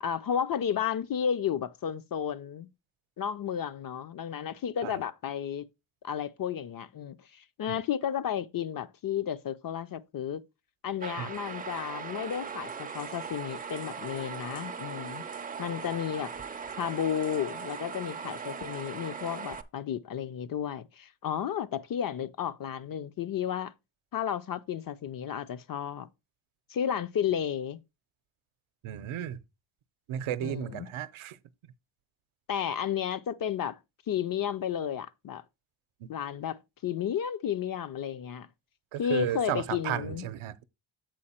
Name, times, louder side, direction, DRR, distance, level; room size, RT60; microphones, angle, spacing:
voice 1, 0.0-2.7 3.2-5.7 6.0-10.4 10.8-15.2 15.6-16.3 16.8-23.7 24.1-26.1 26.7-27.8 30.4-30.9 32.5-33.8 34.1-35.4 36.1-38.5 39.0-40.2, left 8 dB, 45° left, 0.4 m, -32 dB
sound 1, 11.0-19.6, right 6 dB, 20° right, 0.4 m, -39 dB
voice 2, 28.8-29.4 30.1-31.4 36.0-36.1 38.9-40.5, right 11 dB, 80° right, 0.7 m, -34 dB
7.7 x 4.6 x 4.2 m
wide cardioid pair, 145°, 48 cm